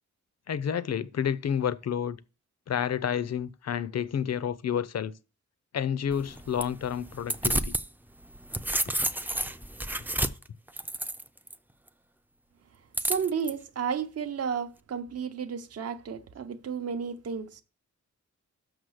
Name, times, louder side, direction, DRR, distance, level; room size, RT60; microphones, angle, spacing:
voice 1, 0.5-2.2 2.7-5.1 5.7-7.8, left 8 dB, 60° left, 0.5 m, -30 dB
sound 1, 6.1-7.9 8.2-11.5 12.9-13.5, right 1 dB, 5° right, 0.4 m, -30 dB
voice 2, 13.0-17.6, right 6 dB, 55° right, 0.7 m, -32 dB
6.5 x 6.3 x 6.3 m
wide cardioid pair, 165°, 30 cm